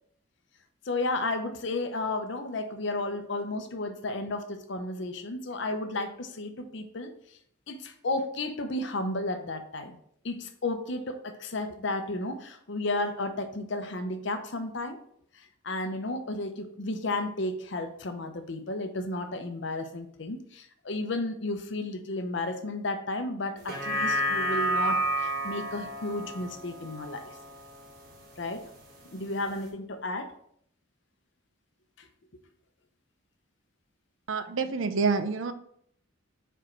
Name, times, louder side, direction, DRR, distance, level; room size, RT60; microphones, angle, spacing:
voice 1, 0.8-7.4 7.7-10.0 10.2-15.0 15.3-27.4 28.4-28.7 29.1-30.3 32.0-32.1, left 2 dB, 55° left, 7 dB, 0.7 m, -33 dB
sound 1, 23.6-28.1 28.5-28.6, right 1 dB, 45° right, 1.4 m, -30 dB
voice 2, 34.3-35.5, right 4 dB, 70° right, 10 dB, 0.6 m, -27 dB
5.0 x 4.4 x 4.4 m, 0.67 s
head